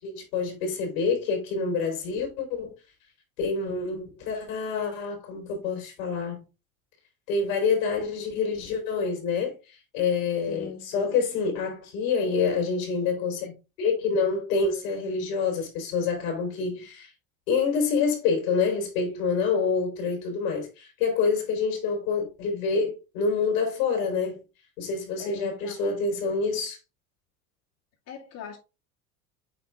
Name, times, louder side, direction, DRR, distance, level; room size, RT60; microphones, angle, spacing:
voice 1, 0.0-2.8 3.4-6.4 7.3-17.1 17.5-24.4 24.8-26.8, left 5 dB, 70° left, 4.0 m, -27 dB
voice 2, 10.5-11.2 25.2-26.0 28.1-28.6, left 7 dB, 55° left, 2.3 m, -40 dB
8.4 x 3.7 x 3.5 m
hypercardioid pair, 95°, 41 cm